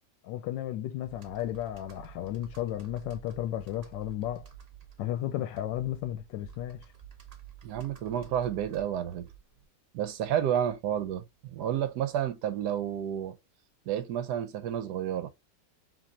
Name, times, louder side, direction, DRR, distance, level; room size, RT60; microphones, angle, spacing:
voice 1, 0.2-4.5 5.0-6.9, left 12 dB, 85° left, 1.3 m, -34 dB
Computer keyboard, 1.0-9.6, right 9 dB, 50° right, 0.4 m, -51 dB
voice 2, 7.6-9.3 9.9-13.4 13.9-15.3, right 10 dB, 70° right, 1.1 m, -30 dB
5.3 x 2.9 x 2.7 m
omnidirectional pair, 1.9 m